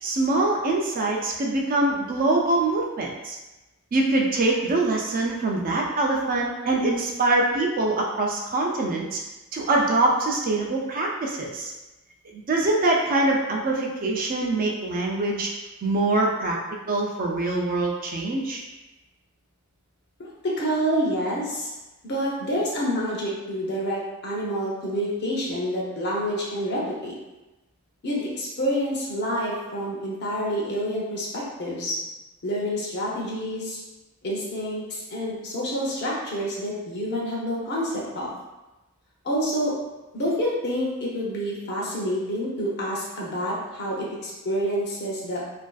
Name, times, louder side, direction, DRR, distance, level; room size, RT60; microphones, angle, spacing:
voice 1, 0.0-3.4 3.9-9.2 9.5-11.7 12.3-15.5 15.8-16.6 16.9-18.6, right 2 dB, 40° right, -1 dB, 0.3 m, -24 dB
voice 2, 20.2-21.7 22.0-27.1 28.0-32.0 32.4-33.8 34.2-38.3 39.2-39.8 40.1-45.4, equal, 50° left, -4 dB, 0.6 m, -28 dB
2.5 x 2.3 x 2.2 m, 1.1 s
head